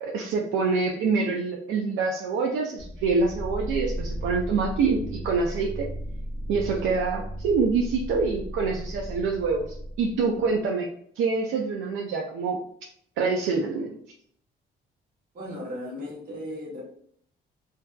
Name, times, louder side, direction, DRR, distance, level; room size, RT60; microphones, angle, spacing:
voice 1, 0.0-5.9 6.5-9.7 10.0-10.9 11.2-12.6 13.2-13.9, right 4 dB, 80° right, 0 dB, 0.4 m, -26 dB
sound 1, 2.8-10.6, equal, 5° left, 0.7 m, -35 dB
voice 2, 15.3-16.8, left 1 dB, 45° right, -4 dB, 1.1 m, -36 dB
2.5 x 2.2 x 2.3 m, 0.64 s
cardioid pair, 90°, 20 cm